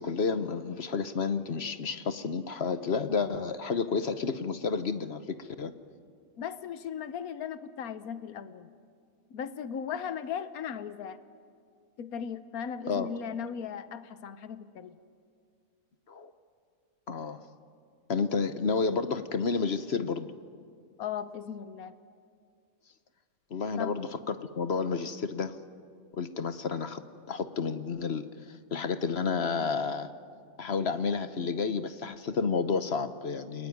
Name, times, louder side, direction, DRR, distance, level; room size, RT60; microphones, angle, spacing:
voice 1, 0.0-5.7 12.9-13.1 16.1-16.3 17.1-17.4 18.1-20.3 23.5-25.5 26.1-27.0 27.3-30.1 30.6-33.7, left 5 dB, 50° left, 11 dB, 1.1 m, -31 dB
voice 2, 6.4-8.7 9.3-11.2 12.0-15.0 21.0-21.9 23.8-24.0, left 8 dB, 80° left, 13 dB, 1.4 m, -37 dB
29.0 x 21.5 x 9.4 m, 2.2 s
omnidirectional pair, 1.5 m